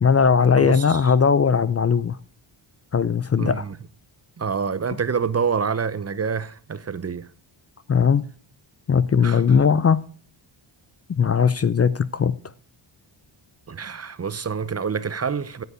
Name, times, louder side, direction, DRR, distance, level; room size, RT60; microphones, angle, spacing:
voice 1, 0.0-2.2 2.9-3.6 7.9-8.3 8.9-10.0 11.1-12.4, left 6 dB, 30° left, 0.6 m, -19 dB
voice 2, 0.6-1.0 3.4-3.7 4.4-7.3 9.2-9.4 13.7-15.6, right 6 dB, 30° right, 0.8 m, -27 dB
14.0 x 8.1 x 4.9 m
cardioid pair, 110°, 48 cm